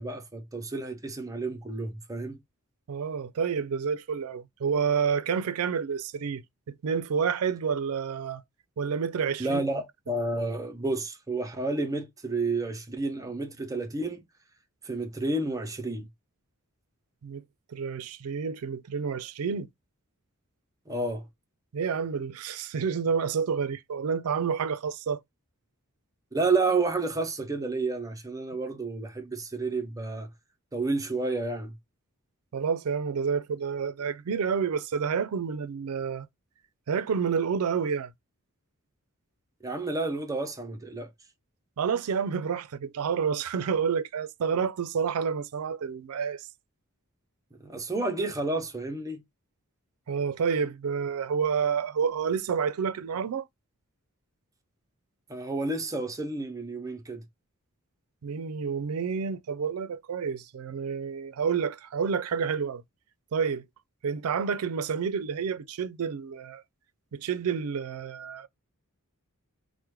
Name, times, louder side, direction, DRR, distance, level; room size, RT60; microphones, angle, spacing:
voice 1, 0.0-2.4 9.4-14.2 14.8-16.1 20.9-21.3 26.3-30.3 30.7-31.7 39.6-41.1 47.6-49.2 55.3-57.2, right 3 dB, 15° right, 0.5 m, -30 dB
voice 2, 2.9-8.4 8.8-9.6 17.2-17.4 17.7-19.7 21.7-25.2 32.5-36.3 36.9-38.1 41.8-46.5 50.1-53.5 58.2-62.8 63.3-63.7 64.0-66.6 67.1-68.5, right 6 dB, 70° right, 0.4 m, -29 dB
4.7 x 2.1 x 3.0 m
head